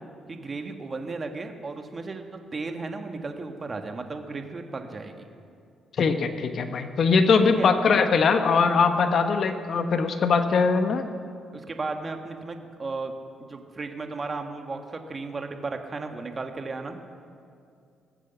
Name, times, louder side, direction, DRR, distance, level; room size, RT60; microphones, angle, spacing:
voice 1, 0.3-2.2 2.5-5.3 7.6-7.7 11.5-13.1 13.5-17.0, right 3 dB, 35° right, 5 dB, 1.5 m, -34 dB
voice 2, 6.0-11.0, left 5 dB, 55° left, 7 dB, 1.1 m, -21 dB
20.0 x 8.1 x 7.0 m, 2.4 s
cardioid pair, 90°, 0 cm